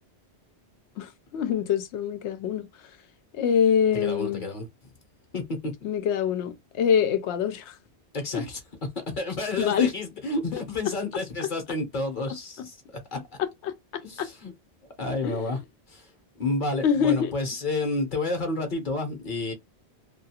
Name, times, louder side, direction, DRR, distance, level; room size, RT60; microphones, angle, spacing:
voice 1, 1.0-2.7 3.3-4.4 5.8-7.7 8.3-8.4 9.6-9.9 13.4-14.3 15.2-15.4 16.8-17.3, left 8 dB, 90° left, 0.9 m, -25 dB
voice 2, 3.9-4.9 5.3-5.7 8.1-8.6 9.0-13.2 14.0-14.5 15.0-15.6 15.9-16.1 16.4-19.5, left 2 dB, 50° left, 0.9 m, -30 dB
2.3 x 2.3 x 2.8 m
omnidirectional pair, 1.1 m